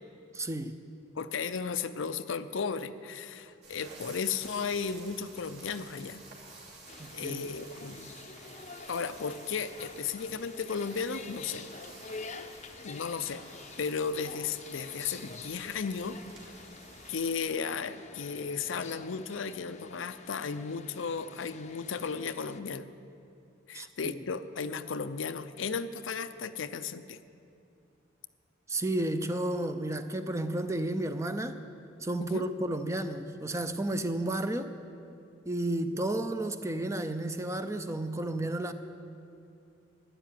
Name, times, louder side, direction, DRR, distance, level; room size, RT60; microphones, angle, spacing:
voice 1, 0.3-0.8 7.0-7.5 23.7-24.2 28.7-31.6 32.0-34.7 35.5-38.7, right 1 dB, 15° right, 9 dB, 0.6 m, -32 dB
voice 2, 1.2-6.2 7.1-8.1 8.9-11.7 12.8-13.4 13.8-16.2 17.1-22.9 23.7-27.2 32.3-32.4, left 5 dB, 80° left, 11 dB, 0.6 m, -35 dB
sound 1, 3.6-17.3, right 3 dB, 60° right, 3.0 m, -51 dB
sound 2, 6.9-22.6, left 4 dB, 35° left, 0.6 m, -48 dB
12.5 x 10.5 x 9.1 m, 2.6 s
head